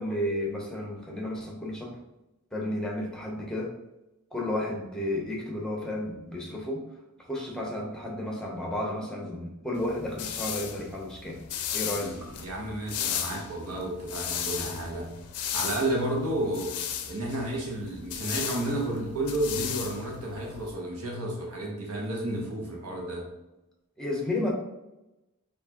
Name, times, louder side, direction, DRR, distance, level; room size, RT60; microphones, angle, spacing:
voice 1, 0.0-1.9 2.5-3.7 4.3-6.8 7.3-11.4 11.7-12.3 24.0-24.5, left 1 dB, 5° left, -1 dB, 0.6 m, -32 dB
sound 1, 9.8-20.7, left 8 dB, 85° left, 0.5 m, -35 dB
voice 2, 11.9-15.1 15.5-16.7 17.1-23.2, right 1 dB, 85° right, -1 dB, 1.1 m, -31 dB
4.5 x 2.7 x 2.8 m, 0.95 s
head